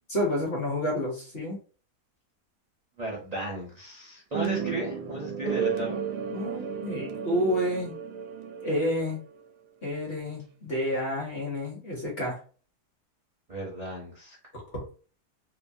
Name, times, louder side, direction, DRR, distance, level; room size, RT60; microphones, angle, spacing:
voice 1, 0.1-1.6 6.3-8.0 8.6-9.2 9.8-12.4 14.5-14.8, equal, 45° left, -3 dB, 0.9 m, -29 dB
voice 2, 3.0-6.0 13.5-14.4, right 1 dB, 50° right, -4 dB, 0.5 m, -34 dB
sound 1, 4.3-9.4, right 7 dB, 85° right, 1.2 m, -33 dB
3.0 x 2.0 x 2.5 m, 0.40 s
omnidirectional pair, 1.7 m